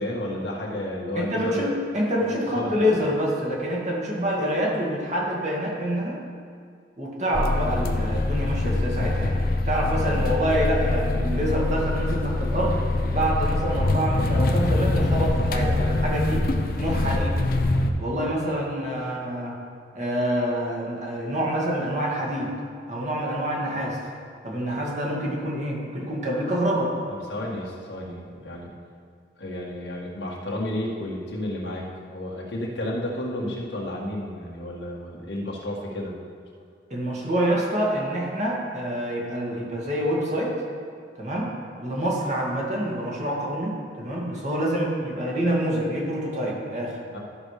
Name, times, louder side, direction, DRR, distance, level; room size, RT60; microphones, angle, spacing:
voice 1, 0.0-1.7 2.2-3.0 10.0-10.3 27.1-28.7 29.4-36.2 47.1-47.2, left 1 dB, 80° left, -3 dB, 1.8 m, -32 dB
voice 2, 1.1-6.2 7.0-9.4 9.6-12.8 13.1-16.5 16.8-17.3 18.0-19.6 19.9-22.5 22.9-24.0 24.4-26.9 36.9-40.5 41.2-41.5 41.8-47.0, equal, 40° right, -3 dB, 2.0 m, -26 dB
sound 1, 7.3-17.9, left 2 dB, 50° left, 0.7 m, -24 dB
12.5 x 6.2 x 5.0 m, 2.2 s
head